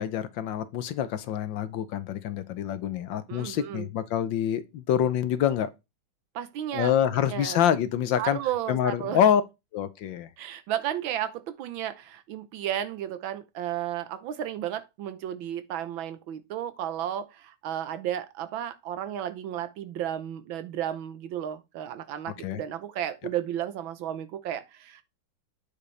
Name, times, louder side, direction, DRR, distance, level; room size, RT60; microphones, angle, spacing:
voice 1, 0.0-5.7 6.7-8.4 8.7-9.4 9.7-10.3 22.4-22.6, left 9 dB, 70° left, 1.5 m, -26 dB
voice 2, 3.3-3.9 6.3-7.6 8.2-9.2 10.4-25.0, right 11 dB, 80° right, 1.6 m, -33 dB
8.9 x 6.7 x 3.3 m
omnidirectional pair, 2.2 m